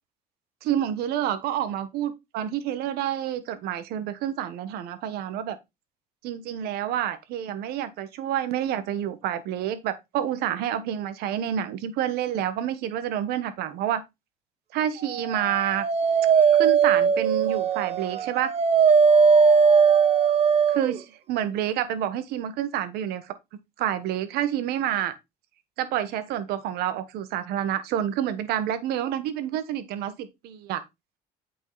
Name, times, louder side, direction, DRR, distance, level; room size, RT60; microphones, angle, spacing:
voice 1, 0.6-5.6 6.2-14.0 14.7-15.9 16.5-18.5 20.7-23.3 23.8-25.1 25.8-30.8, right 10 dB, 80° right, 1.2 m, -28 dB
Dog, 15.4-21.0, right 6 dB, 40° right, 1.1 m, -19 dB
8.3 x 5.5 x 3.9 m
cardioid pair, 100°, 16 cm